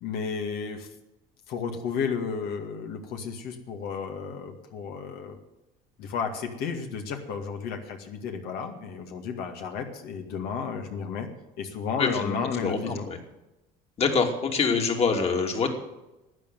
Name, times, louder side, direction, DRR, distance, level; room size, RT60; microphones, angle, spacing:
voice 1, 0.0-0.9 1.5-5.4 6.0-11.3 11.6-13.1, left 6 dB, 70° left, 4 dB, 2.1 m, -33 dB
voice 2, 12.0-13.2 14.0-15.7, left 5 dB, 35° left, 3 dB, 2.8 m, -25 dB
12.0 x 9.4 x 9.1 m, 0.98 s
supercardioid pair, 110°, 17 cm